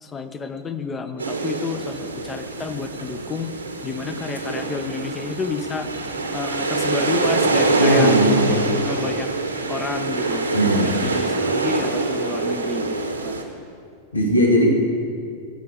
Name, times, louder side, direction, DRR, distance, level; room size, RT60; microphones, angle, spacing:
voice 1, 0.0-3.5 3.8-5.9 6.3-8.2 8.4-9.3 9.7-13.0 13.2-13.5, left 4 dB, 20° left, 10 dB, 0.8 m, -30 dB
sound 1, 1.2-13.4, right 3 dB, 80° right, 1.2 m, -24 dB
voice 2, 7.8-8.5 10.5-10.9 14.1-14.7, equal, 80° left, 0 dB, 2.0 m, -18 dB
15.0 x 6.8 x 8.1 m, 2.3 s
figure-of-eight pair, 90°, 0 cm